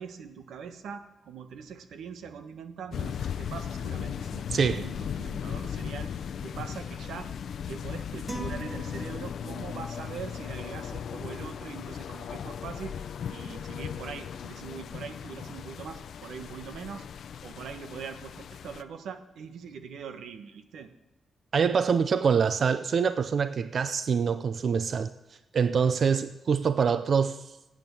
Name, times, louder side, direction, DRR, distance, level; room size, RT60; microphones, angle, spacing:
voice 1, 0.0-4.6 4.8-7.3 7.7-17.1 17.4-20.9, right 6 dB, 90° right, 8 dB, 1.3 m, -42 dB
sound 1, 2.9-18.8, left 8 dB, 60° left, 0.6 m, -37 dB
voice 2, 4.5-4.9 21.5-25.1 25.5-27.4, right 6 dB, 45° right, 11 dB, 0.5 m, -25 dB
sound 2, 8.3-9.8, right 2 dB, 10° right, 2.2 m, -41 dB
17.5 x 9.0 x 7.0 m, 0.98 s
wide cardioid pair, 170°, 0 cm